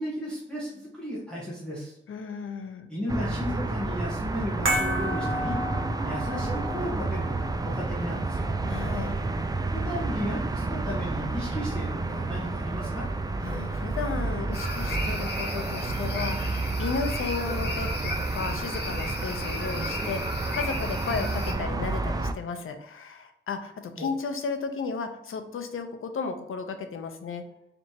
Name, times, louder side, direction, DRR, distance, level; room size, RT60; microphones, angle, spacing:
voice 1, 0.0-2.0 2.9-5.6 6.0-8.5 9.7-13.1 24.0-24.1, equal, 5° left, -7 dB, 1.3 m, -34 dB
voice 2, 2.1-2.9 8.6-9.2 13.4-27.4, left 5 dB, 80° left, 7 dB, 0.6 m, -34 dB
sound 1, 3.1-22.3, right 2 dB, 20° right, 0.3 m, -30 dB
sound 2, 4.7-11.1 11.3-11.5, right 1 dB, 75° right, 1.2 m, -34 dB
sound 3, 14.5-21.5, left 2 dB, 55° left, 0.9 m, -36 dB
4.0 x 3.4 x 2.8 m, 0.82 s
wide cardioid pair, 100°, 21 cm